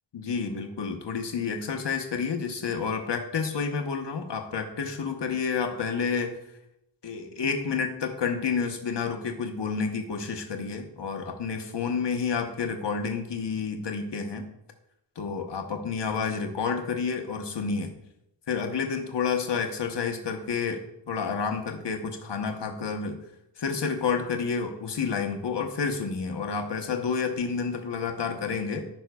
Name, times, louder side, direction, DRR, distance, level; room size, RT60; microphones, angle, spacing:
voice 1, 0.1-6.4 7.0-14.5 15.2-17.9 18.5-23.2 23.6-28.9, left 5 dB, 70° left, 4 dB, 1.0 m, -30 dB
15.0 x 5.5 x 2.3 m, 0.82 s
wide cardioid pair, 140°, 43 cm